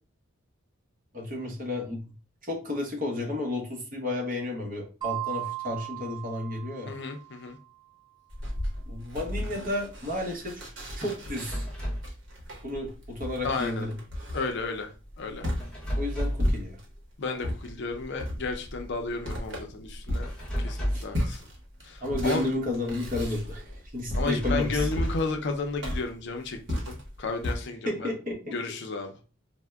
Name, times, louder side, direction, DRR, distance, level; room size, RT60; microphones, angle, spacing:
voice 1, 1.1-2.0 2.4-6.9 8.9-10.7 11.0-11.5 12.6-14.0 16.0-16.8 20.9-21.0 22.0-24.9 27.8-28.6, left 1 dB, 40° right, -1 dB, 0.9 m, -32 dB
sound 1, 5.0-7.5, right 18 dB, 25° right, 0.5 m, -37 dB
voice 2, 6.9-7.6 13.4-13.9 14.3-14.9 15.2-15.5 17.2-20.3 20.6-21.4 21.8-22.5 24.1-28.1 28.5-29.1, left 3 dB, 55° left, 5 dB, 0.5 m, -32 dB
sound 2, 8.3-17.0 17.4-27.6, equal, 60° right, 1.0 m, -34 dB
sound 3, 11.4-12.1 15.6-16.6 20.2-21.2 24.1-25.4, equal, 5° left, 0.8 m, -32 dB
4.2 x 2.1 x 2.2 m, 0.34 s
head